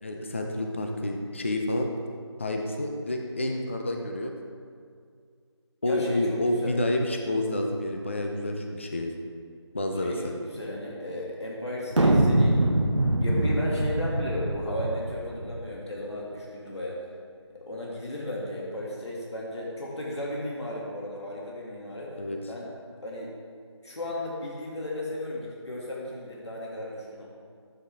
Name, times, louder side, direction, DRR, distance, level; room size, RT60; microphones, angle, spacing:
voice 1, 0.0-1.9 2.4-4.3 5.8-9.1 9.7-10.3 22.2-22.4, left 1 dB, 25° left, 2 dB, 0.5 m, -29 dB
voice 2, 5.8-6.7 10.0-12.7 13.2-17.0 17.5-22.1 22.5-22.7 23.0-23.3 23.8-27.3, left 1 dB, 70° left, -4 dB, 2.3 m, -35 dB
sound 1, 11.9-15.5, right 1 dB, 85° right, 1.2 m, -23 dB
13.0 x 7.8 x 3.5 m, 2.1 s
figure-of-eight pair, 170°, 15 cm